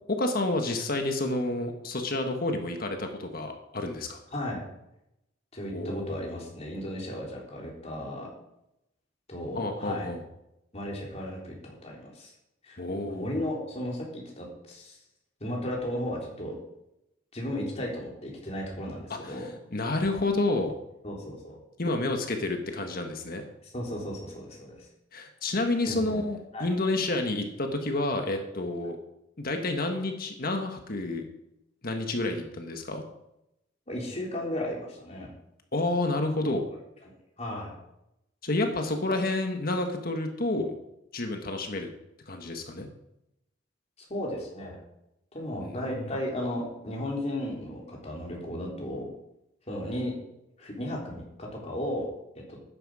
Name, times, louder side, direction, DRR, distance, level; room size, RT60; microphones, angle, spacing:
voice 1, 0.1-4.2 5.7-6.4 9.5-10.2 12.8-13.3 19.1-20.7 21.8-23.4 25.1-28.9 29.4-31.3 31.8-33.0 35.7-36.6 38.4-40.7 41.1-41.9 42.3-42.9 45.6-46.0, left 2 dB, 50° left, 4 dB, 1.5 m, -29 dB
voice 2, 4.3-4.6 5.5-8.3 9.3-10.1 10.7-12.3 12.6-12.8 13.0-15.0 15.4-16.6 17.3-19.5 21.0-21.6 23.7-24.9 25.9-26.1 26.5-26.7 33.9-35.3 37.1-37.7 44.1-44.8 45.3-49.1 49.7-50.2 50.6-52.1 52.5-52.6, left 1 dB, 35° left, -2 dB, 3.7 m, -35 dB
13.0 x 10.0 x 5.0 m, 0.84 s
head